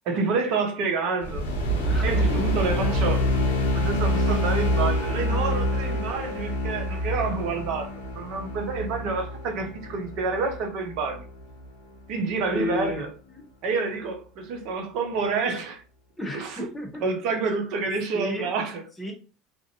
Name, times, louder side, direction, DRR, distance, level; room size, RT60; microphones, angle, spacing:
voice 1, 0.1-1.5 2.0-3.3 3.7-11.2 12.1-13.1 13.6-15.8 16.3-16.7 17.0-18.8, right 4 dB, 60° right, 0.6 m, -28 dB
sound 1, 1.2-11.7, equal, 85° left, 0.6 m, -26 dB
voice 2, 1.8-2.6 12.5-13.4 16.2-17.0 18.1-18.5 19.0-19.1, left 1 dB, 15° left, 0.9 m, -33 dB
2.5 x 2.1 x 2.7 m
hypercardioid pair, 75°, 0 cm